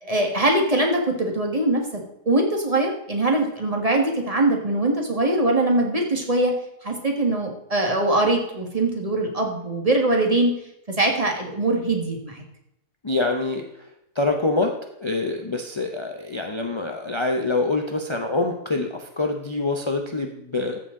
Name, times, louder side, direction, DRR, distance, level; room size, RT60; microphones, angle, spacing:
voice 1, 0.0-1.8 2.2-6.5 6.8-10.5 11.0-12.4, right 2 dB, 25° right, 1 dB, 1.6 m, -22 dB
voice 2, 13.0-13.7 14.1-20.8, left 2 dB, 35° left, 3 dB, 0.4 m, -25 dB
14.0 x 7.0 x 3.7 m, 0.81 s
omnidirectional pair, 1.7 m